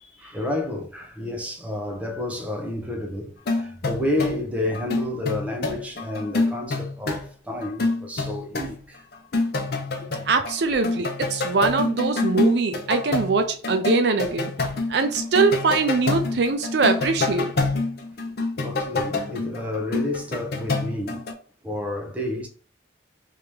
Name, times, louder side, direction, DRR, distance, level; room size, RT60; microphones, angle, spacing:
voice 1, 0.2-9.0 10.0-10.1 18.6-21.2 21.6-22.5, left 1 dB, 5° right, 0.7 m, -30 dB
sound 1, 3.5-4.5 4.7-7.2 7.6-8.8 9.1-10.6 10.8-21.3, left 3 dB, 55° left, 0.6 m, -27 dB
voice 2, 10.3-14.5 14.9-17.5, right 4 dB, 60° right, 0.4 m, -22 dB
3.2 x 2.9 x 3.4 m
head